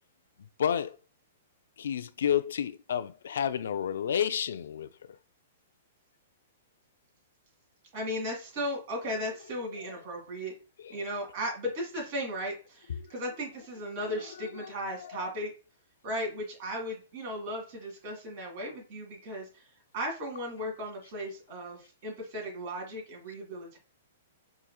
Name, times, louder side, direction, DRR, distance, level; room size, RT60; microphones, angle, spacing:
voice 1, 0.6-1.0 1.8-4.9 15.0-15.2, left 9 dB, 75° left, 0.3 m, -30 dB
voice 2, 7.9-10.5 10.9-15.5 16.0-19.7 19.9-23.8, equal, 50° right, 2.0 m, -36 dB
4.8 x 2.9 x 2.3 m
hypercardioid pair, 140°, 0 cm